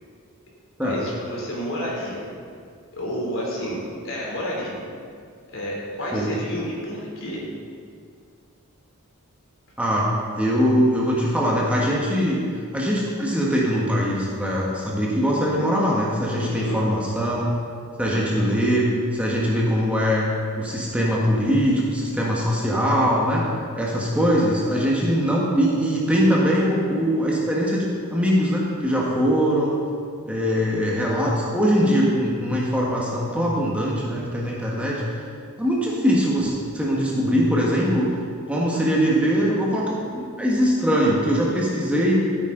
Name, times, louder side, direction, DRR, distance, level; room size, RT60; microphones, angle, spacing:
voice 1, 0.8-2.2 2.9-4.8 5.5-7.4 16.3-16.8, equal, 60° left, -4 dB, 3.2 m, -30 dB
voice 2, 9.8-10.1 10.3-12.4 12.7-17.5 18.0-20.2 20.6-23.4 23.8-29.8 30.3-35.2 35.6-38.1 38.5-42.3, equal, 5° right, -4 dB, 1.4 m, -22 dB
14.0 x 9.1 x 3.9 m, 2.2 s
head